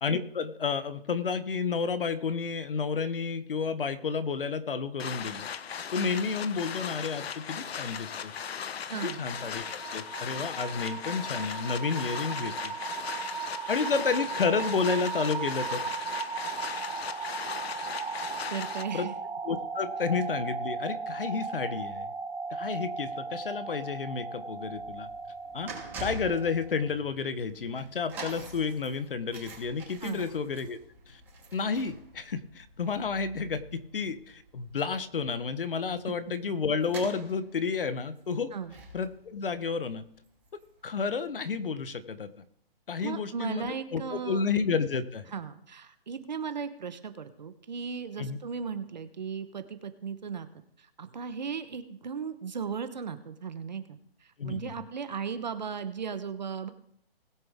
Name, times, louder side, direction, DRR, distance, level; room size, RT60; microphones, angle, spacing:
voice 1, 0.0-5.5 5.9-8.3 9.0-12.7 13.7-16.1 18.9-19.1 19.4-22.1 22.5-25.1 25.5-25.7 26.0-30.8 31.1-31.2 31.5-38.5 38.9-40.1 40.8-42.3 42.9-45.3 48.2-48.4 54.4-54.7, left 5 dB, 65° left, 12 dB, 1.1 m, -31 dB
sound 1, 5.0-18.8, left 7 dB, 90° left, 0.8 m, -38 dB
voice 2, 8.9-9.2 18.5-19.1 30.0-30.3 38.5-38.7 43.0-44.4 45.3-50.5 50.8-56.7, right 6 dB, 45° right, 10 dB, 1.1 m, -36 dB
sound 2, 8.9-26.8, right 5 dB, 65° right, 1.6 m, -37 dB
sound 3, 24.6-40.9 41.2-41.4 42.2-42.3, right 2 dB, 5° right, 2.0 m, -47 dB
20.0 x 7.0 x 3.6 m, 0.70 s
hypercardioid pair, 180°, 30 cm